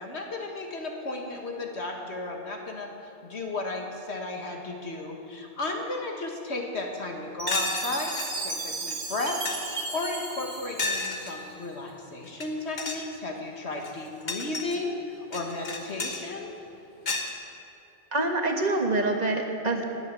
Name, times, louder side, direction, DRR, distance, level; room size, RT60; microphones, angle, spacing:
voice 1, 0.0-2.9 3.2-8.1 8.4-9.4 9.6-15.0 15.3-16.5, left 2 dB, 65° left, 2 dB, 2.0 m, -34 dB
sound 1, 7.0-7.1 7.5-8.3 8.9-9.0 9.3-9.8 10.8-11.3 12.3-12.5 12.8-13.1 13.7-14.8 15.3-16.2 17.1-17.3, left 3 dB, 40° left, 1.4 m, -32 dB
Chime, 7.4-11.6, right 3 dB, 60° right, 1.7 m, -35 dB
voice 2, 18.1-19.9, right 2 dB, 35° right, 2 dB, 1.6 m, -26 dB
19.5 x 8.3 x 7.7 m, 2.6 s
omnidirectional pair, 1.2 m